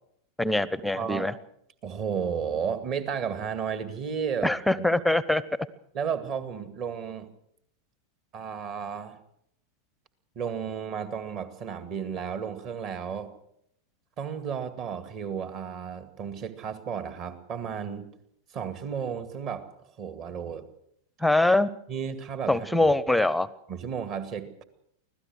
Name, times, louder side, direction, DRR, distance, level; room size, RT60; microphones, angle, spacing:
voice 1, 0.4-1.3 4.4-5.4 21.2-21.7 22.5-23.5, left 2 dB, ahead, 19 dB, 0.8 m, -23 dB
voice 2, 0.9-1.3 1.8-4.8 5.9-7.3 8.3-9.2 10.4-13.3 14.2-18.1 18.5-19.7 20.0-20.7 21.9-22.9 23.7-24.6, right 7 dB, 35° right, 10 dB, 2.1 m, -33 dB
24.5 x 16.5 x 6.3 m, 0.73 s
figure-of-eight pair, 90°, 0 cm